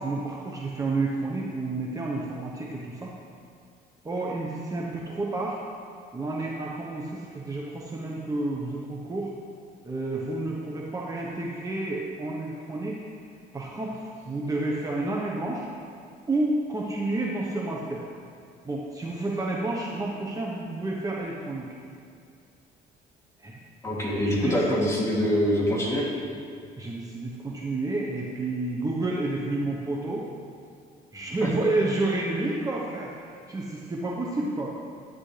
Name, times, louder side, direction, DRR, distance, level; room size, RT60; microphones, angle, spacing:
voice 1, 0.0-3.1 4.0-5.6 6.1-9.3 9.8-13.0 13.5-15.7 16.3-18.0 18.6-21.7 23.4-23.6 24.2-24.5 26.8-30.3 31.1-34.7, right 2 dB, 20° right, -3 dB, 1.1 m, -30 dB
voice 2, 23.8-26.1 31.4-31.5, equal, 15° left, -5 dB, 2.9 m, -24 dB
13.0 x 9.3 x 3.4 m, 2.3 s
cardioid pair, 110°, 17 cm